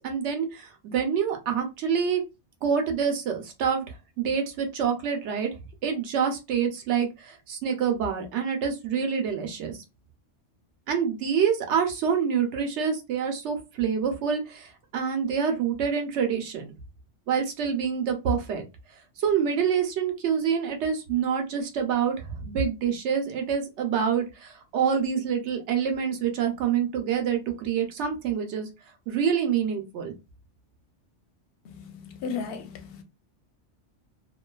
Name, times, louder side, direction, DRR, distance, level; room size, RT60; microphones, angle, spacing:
voice 1, 0.0-2.2 2.6-5.5 5.8-9.8 10.9-16.7 17.3-18.7 19.2-28.7 29.1-30.1, right 7 dB, 70° right, 0.9 m, -26 dB
voice 2, 31.6-33.0, left 5 dB, 60° left, 0.7 m, -35 dB
2.5 x 2.3 x 2.2 m
omnidirectional pair, 1.2 m